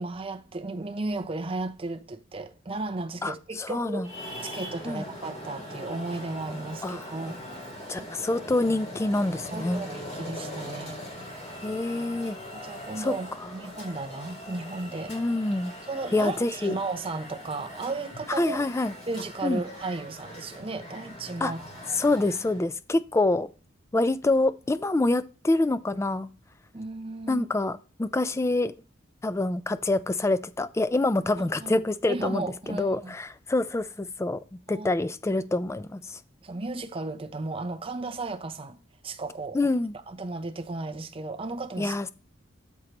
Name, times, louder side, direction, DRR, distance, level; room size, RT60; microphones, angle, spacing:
voice 1, 0.0-4.1 4.4-8.1 9.5-11.5 12.5-13.3 13.5-15.1 15.8-18.6 19.1-21.6 26.7-27.5 31.4-33.1 34.7-34.9 36.4-38.8 39.0-39.6 40.1-42.1, right 3 dB, 30° right, 0.6 m, -35 dB
voice 2, 3.2-4.1 4.9-5.0 6.8-7.0 7.9-9.8 11.6-12.4 13.0-13.1 13.4-13.5 15.1-15.7 16.1-16.7 18.4-18.9 19.4-19.6 21.4-21.5 22.0-23.5 23.9-26.3 27.3-28.7 29.2-34.4 34.7-36.2 39.5-39.9 41.8-42.1, left 2 dB, 15° left, 0.3 m, -26 dB
Traffic noise roadway noise, 4.0-22.7, equal, 35° left, 3.0 m, -41 dB
13.0 x 4.5 x 2.9 m
head